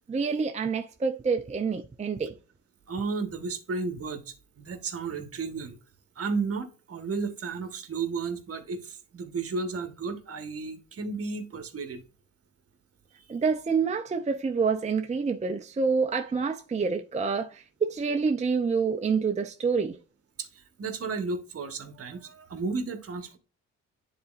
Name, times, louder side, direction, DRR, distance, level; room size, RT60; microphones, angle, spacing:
voice 1, 0.1-2.3 13.3-20.0, right 5 dB, 25° right, 0.6 m, -27 dB
voice 2, 2.9-5.8 6.1-12.0 13.2-13.3 20.4-23.4, right 4 dB, 50° right, 1.4 m, -33 dB
10.0 x 4.1 x 2.5 m
cardioid pair, 90°, 30 cm